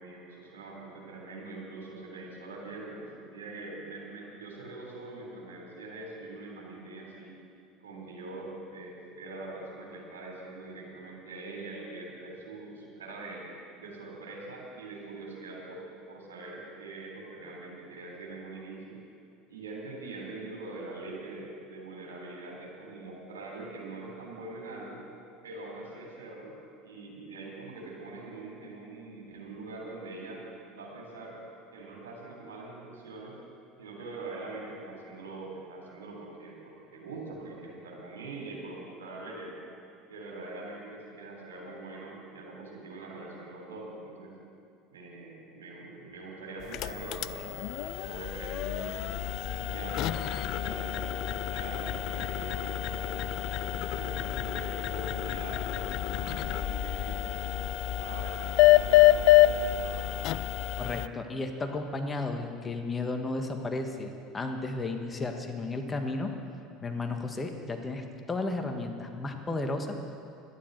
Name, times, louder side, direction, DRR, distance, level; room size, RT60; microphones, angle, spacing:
voice 1, 0.0-7.4 7.8-13.5 13.8-19.0 19.5-25.0 25.4-26.5 26.8-30.4 30.7-31.4 31.7-33.3 33.8-39.6 40.1-44.3 44.9-47.5 47.8-49.1 49.4-57.4 58.0-60.2, right 2 dB, 85° right, -2 dB, 3.4 m, -43 dB
sound 1, 46.6-61.1, left 15 dB, 60° left, 0.4 m, -27 dB
voice 2, 60.8-66.4 66.8-70.0, left 2 dB, 25° left, 4 dB, 1.6 m, -33 dB
12.0 x 10.5 x 7.9 m, 2.5 s
hypercardioid pair, 75°, 0 cm